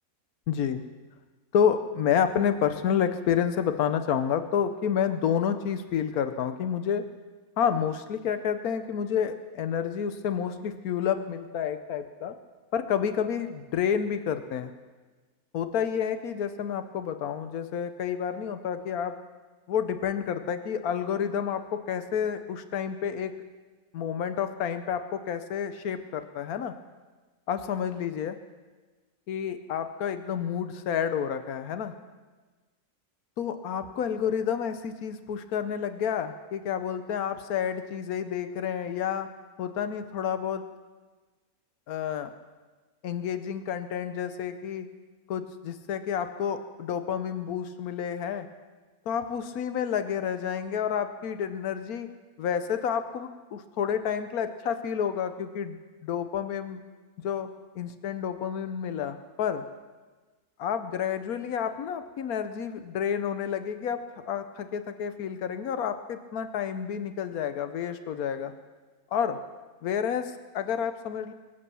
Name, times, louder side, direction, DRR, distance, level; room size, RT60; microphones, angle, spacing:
voice 1, 0.5-0.8 1.5-7.0 7.6-12.3 12.7-14.7 15.5-19.2 19.7-23.3 23.9-26.7 27.5-28.4 29.3-31.9 33.4-39.3 39.6-40.6 41.9-42.3 43.0-44.9 45.3-48.5 49.1-52.1 52.4-56.8 57.2-57.5 57.8-59.6 60.6-68.5 69.1-69.4 69.8-71.3, left 8 dB, 90° left, 9 dB, 1.3 m, -29 dB
23.5 x 8.5 x 6.9 m, 1.3 s
omnidirectional pair, 1.5 m